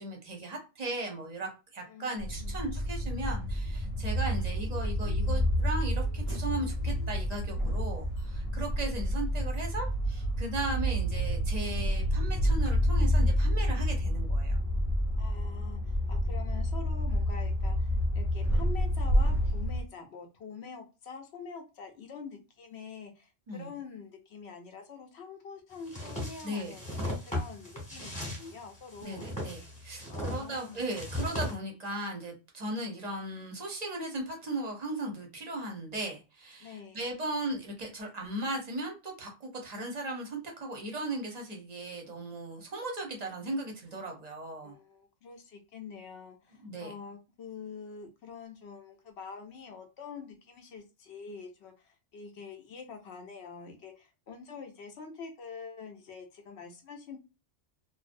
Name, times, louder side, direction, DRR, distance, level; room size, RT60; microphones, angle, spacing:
voice 1, 0.0-14.6 23.5-23.7 26.4-26.7 29.0-44.7 46.6-46.9, right 2 dB, 40° right, 2 dB, 0.6 m, -37 dB
voice 2, 1.8-2.6 15.2-29.3 30.1-30.9 36.6-37.1 43.9-44.0 44.6-57.2, left 5 dB, 65° left, 4 dB, 0.8 m, -46 dB
sound 1, 2.2-19.8, equal, 40° left, 0.8 m, -29 dB
sound 2, 25.9-31.6, left 1 dB, 5° left, 1.0 m, -37 dB
2.5 x 2.0 x 2.4 m, 0.29 s
omnidirectional pair, 1.2 m